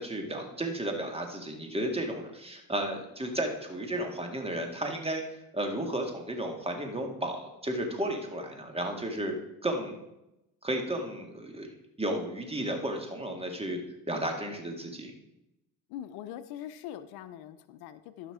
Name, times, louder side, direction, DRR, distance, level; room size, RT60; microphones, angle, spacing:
voice 1, 0.0-5.2 5.5-9.4 9.6-10.0 10.6-11.7 12.0-13.8 14.1-15.1, right 1 dB, 15° right, 3 dB, 2.1 m, -33 dB
voice 2, 15.9-18.3, left 11 dB, 85° left, 12 dB, 0.7 m, -42 dB
13.0 x 5.8 x 4.9 m, 0.90 s
supercardioid pair, 80°, 37 cm